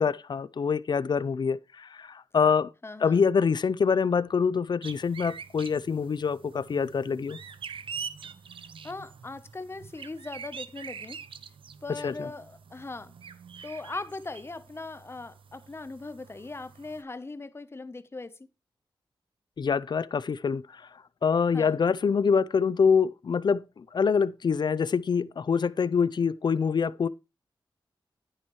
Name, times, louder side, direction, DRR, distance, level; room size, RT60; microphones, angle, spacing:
voice 1, 0.0-2.7 3.0-7.4 12.0-12.3 19.6-20.8 21.2-27.1, left 6 dB, 55° left, 0.5 m, -25 dB
voice 2, 2.8-3.2 8.8-11.2 11.8-13.1 13.6-18.3 21.5-21.8, left 3 dB, 30° left, 0.8 m, -39 dB
sound 1, 4.8-17.0, right 6 dB, 75° right, 0.7 m, -44 dB
9.7 x 8.7 x 3.1 m
cardioid pair, 65°, 9 cm